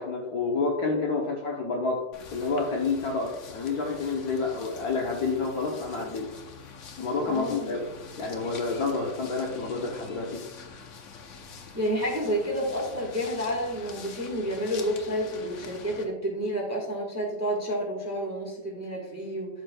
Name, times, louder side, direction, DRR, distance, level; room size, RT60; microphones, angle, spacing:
voice 1, 0.0-2.0 2.3-6.3 7.0-7.9 8.2-10.4, left 4 dB, 60° left, -1 dB, 1.1 m, -29 dB
sound 1, 2.1-16.1, left 4 dB, 85° left, 0.6 m, -45 dB
voice 2, 7.3-7.8 11.7-19.5, equal, 10° right, -2 dB, 1.0 m, -30 dB
12.5 x 4.5 x 2.3 m, 1.0 s
omnidirectional pair, 2.4 m